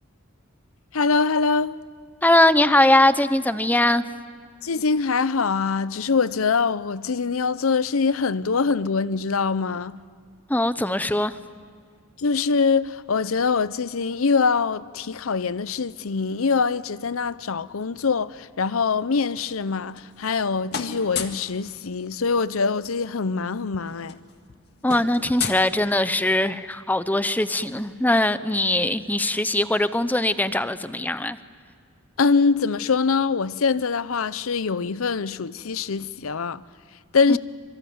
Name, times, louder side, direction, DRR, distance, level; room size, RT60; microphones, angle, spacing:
voice 1, 0.9-1.8 4.6-10.0 12.2-24.2 32.2-36.6 37.1-37.4, left 5 dB, 75° left, 0.7 m, -23 dB
voice 2, 2.2-4.0 10.5-11.4 24.8-31.4 37.3-37.4, left 1 dB, 10° left, 0.7 m, -21 dB
sound 1, 19.6-20.4 20.7-21.5 22.9-23.0 23.2-23.4 23.7-26.3, left 7 dB, 50° left, 1.8 m, -34 dB
26.0 x 24.0 x 9.4 m
head